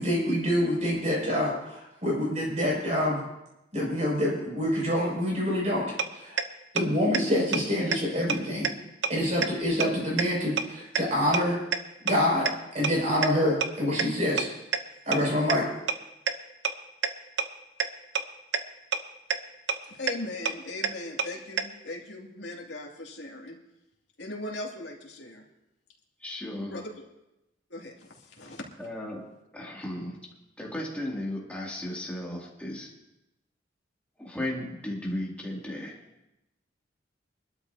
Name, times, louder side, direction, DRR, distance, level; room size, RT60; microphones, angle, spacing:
voice 1, 0.0-3.2 3.7-5.9 6.1-6.4 6.7-8.7 9.1-11.6 12.0-12.5 12.7-14.5 15.1-15.6, left 1 dB, 40° right, -3 dB, 5.9 m, -26 dB
sound 1, 6.0-6.1 6.4-6.5 6.8-6.9 7.1-7.2 7.5-7.6 7.9-8.0 8.3-8.4 8.6-8.7 9.0-9.1 9.4-9.5 9.8-9.9 10.2-10.3 10.6-10.7 10.9-11.0 11.3-11.4 11.7-11.8 12.1-12.2 12.5-12.6 12.8-12.9 13.2-13.3 13.6-13.7 14.0-14.1 14.4-14.5 14.7-14.8 15.1-15.2 15.5-15.6 15.9-16.0 16.3-16.4 16.6-16.7 17.0-17.1 17.4-17.5 17.8-17.9 18.2-18.3 18.5-18.6 18.9-19.0 19.3-19.4 19.7-19.8 20.1-20.2 20.5-20.6 20.8-20.9 21.2-21.3 21.6-21.7, right 6 dB, 70° right, 0.8 m, -25 dB
voice 2, 19.8-23.6 24.2-25.4 26.7-26.9 27.7-28.6, left 2 dB, 70° left, -1 dB, 2.5 m, -39 dB
voice 3, 26.2-26.8 28.8-30.2 30.6-32.9 34.2-36.0, left 1 dB, 5° left, -3 dB, 2.5 m, -35 dB
24.0 x 12.5 x 2.8 m, 0.92 s
head